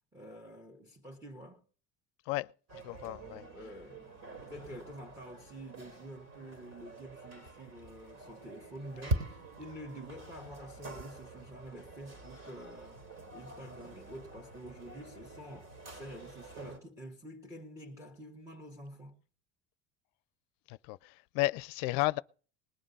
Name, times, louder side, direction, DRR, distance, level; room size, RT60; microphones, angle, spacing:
voice 1, 0.1-1.6 3.5-4.1 4.4-9.3 9.6-19.2, equal, 10° right, 1.5 m, -48 dB
voice 2, 2.3-3.4 20.7-22.2, left 21 dB, 80° left, 0.5 m, -33 dB
sound 1, 2.7-16.8, right 2 dB, 50° right, 3.4 m, -44 dB
20.0 x 7.6 x 5.4 m
cardioid pair, 130°, 32 cm